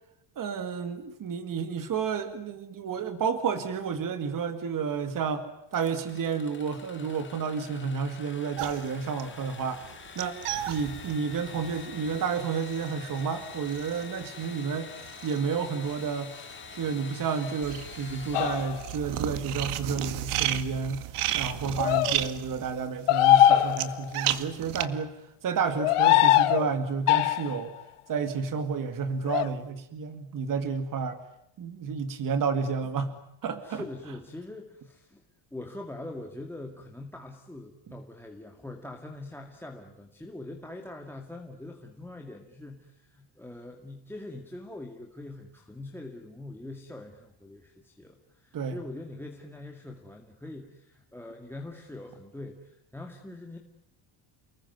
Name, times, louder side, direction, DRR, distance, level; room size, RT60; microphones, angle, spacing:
voice 1, 0.4-5.5 5.7-9.8 10.2-10.4 10.7-14.9 15.2-16.3 16.7-21.0 21.3-25.2 25.4-27.7 28.1-31.2 31.6-33.1 33.4-33.8 37.9-38.0 48.5-48.8, right 6 dB, 40° right, 9 dB, 2.3 m, -31 dB
Engine / Sawing, 5.7-19.4, left 6 dB, 25° left, 2.2 m, -46 dB
sound 1, 8.6-16.1 16.3-24.9, right 12 dB, 80° right, 2.0 m, -34 dB
sound 2, 18.3-18.9 21.8-22.1 23.1-24.2 25.7-26.7 27.1-27.6 29.3-29.5, left 13 dB, 85° left, 1.4 m, -21 dB
voice 2, 33.6-35.2 35.5-53.6, left 2 dB, 5° left, 1 dB, 2.1 m, -43 dB
30.0 x 20.5 x 9.5 m, 0.78 s
cardioid pair, 170°, 50 cm